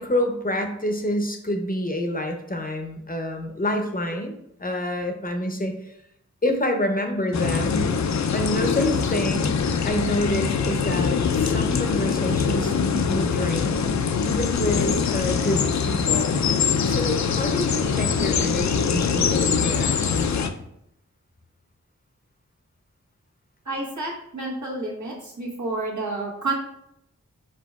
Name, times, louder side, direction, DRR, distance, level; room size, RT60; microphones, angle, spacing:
voice 1, 0.0-5.9 6.4-7.9 8.3-9.6 9.8-13.9 14.2-16.4 16.8-20.4, left 1 dB, 30° left, 4 dB, 0.7 m, -27 dB
sound 1, 7.3-20.5, left 6 dB, 65° left, 0.4 m, -23 dB
voice 2, 23.6-26.5, right 2 dB, 70° right, -3 dB, 1.5 m, -30 dB
5.0 x 4.4 x 2.3 m, 0.76 s
wide cardioid pair, 60°, 30 cm